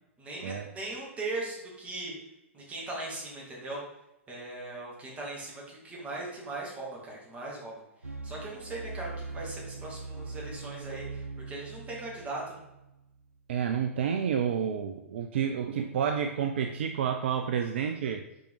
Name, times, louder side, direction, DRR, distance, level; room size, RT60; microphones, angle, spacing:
voice 1, 0.2-2.1 2.5-3.8 4.3-7.8 8.2-12.6, right 2 dB, 20° right, -4 dB, 2.6 m, -39 dB
sound 1, 8.0-13.3, right 4 dB, 90° right, 0.7 m, -41 dB
voice 2, 13.5-18.2, right 8 dB, 50° right, 6 dB, 0.5 m, -29 dB
6.1 x 5.0 x 5.0 m, 0.92 s
figure-of-eight pair, 110°, 8 cm